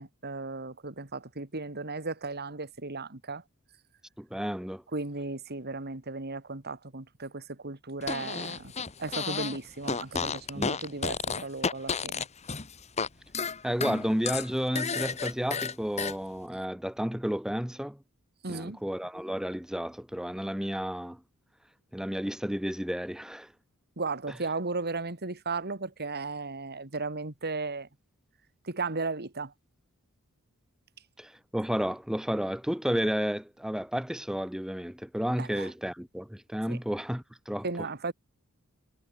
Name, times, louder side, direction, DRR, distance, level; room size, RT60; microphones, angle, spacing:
voice 1, 0.0-3.4 4.9-8.7 9.0-12.2 18.4-18.8 24.0-27.9 28.6-29.5 35.4-35.7 36.7-36.8 37.6-38.1, right 3 dB, 45° right, 2.5 m, -35 dB
voice 2, 4.2-4.8 10.6-10.7 13.6-18.0 18.5-21.2 21.9-23.5 31.2-37.9, equal, 5° right, 0.6 m, -32 dB
Fart, 8.0-9.6 9.8-13.1 13.3-16.1, left 5 dB, 30° left, 1.3 m, -32 dB
head